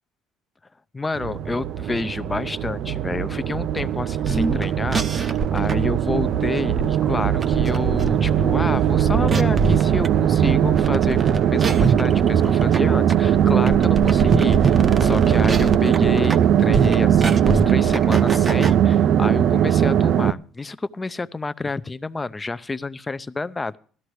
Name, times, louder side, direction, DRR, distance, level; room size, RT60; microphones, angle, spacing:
voice 1, 0.9-23.8, left 3 dB, 15° left, 15 dB, 0.5 m, -29 dB
sound 1, 1.2-20.3, right 10 dB, 55° right, 0.5 m, -19 dB
sound 2, 4.2-18.8, right 4 dB, 25° right, 0.7 m, -26 dB
17.0 x 13.0 x 3.1 m, 0.43 s
cardioid pair, 125°, 0 cm